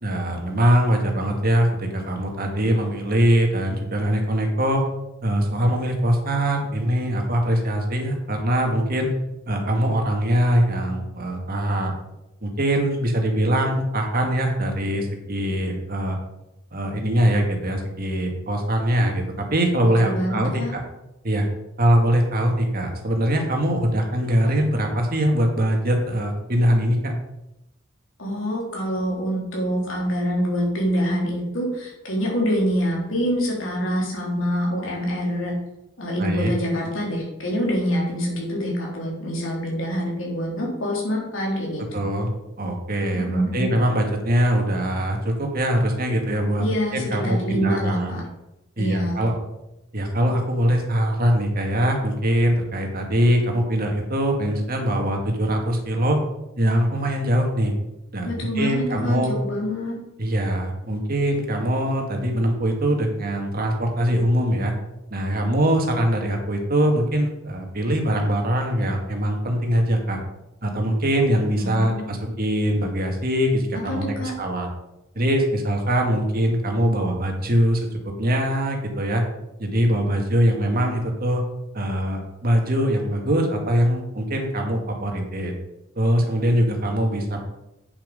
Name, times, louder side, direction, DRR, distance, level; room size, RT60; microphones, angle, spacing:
voice 1, 0.0-4.8 5.2-9.1 9.5-11.9 12.4-16.2 16.7-19.2 19.5-20.8 21.2-21.5 21.8-27.2 36.2-36.5 41.9-42.3 42.6-46.7 46.9-48.1 48.8-49.3 49.9-56.2 56.6-57.7 58.1-59.3 60.2-64.7 65.1-70.2 70.6-74.7 75.2-79.2 79.6-81.4 81.7-85.5 86.0-87.4, equal, 50° right, 2 dB, 2.0 m, -22 dB
voice 2, 20.0-20.7 28.2-35.5 36.0-42.0 43.1-43.7 46.6-48.2 48.8-49.2 58.2-59.9 71.6-72.4 73.9-74.3, equal, 70° left, -3 dB, 3.6 m, -26 dB
8.3 x 7.5 x 5.3 m, 0.90 s
head